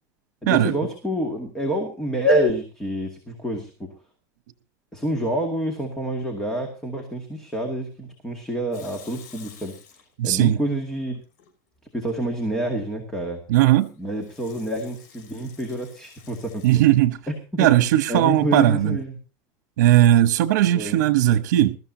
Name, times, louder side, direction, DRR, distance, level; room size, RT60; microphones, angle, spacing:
voice 1, 0.4-3.9 4.9-9.7 10.2-11.2 11.9-13.4 14.0-17.8 18.1-19.2 20.7-21.0, right 1 dB, 5° left, 2.2 m, -27 dB
Water tap faucet / Sink (filling or washing) / Liquid, 8.7-10.4 10.8-11.5 13.5-16.9, left 7 dB, 65° left, 6.5 m, -50 dB
voice 2, 10.2-10.6 13.5-13.9 16.6-17.2 17.6-19.0 19.8-21.8, right 13 dB, 80° right, 1.1 m, -18 dB
21.5 x 13.5 x 2.8 m
supercardioid pair, 175°, 9 cm